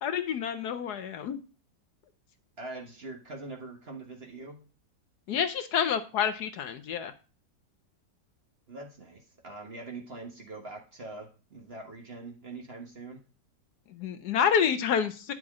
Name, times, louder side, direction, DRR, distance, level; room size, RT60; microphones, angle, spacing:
voice 1, 0.0-1.4 5.3-7.1 13.9-15.3, left 8 dB, 70° left, 9 dB, 1.2 m, -28 dB
voice 2, 2.6-4.6 8.7-13.2, right 3 dB, 35° right, 2 dB, 1.4 m, -43 dB
9.7 x 6.3 x 3.6 m, 0.34 s
omnidirectional pair, 1.9 m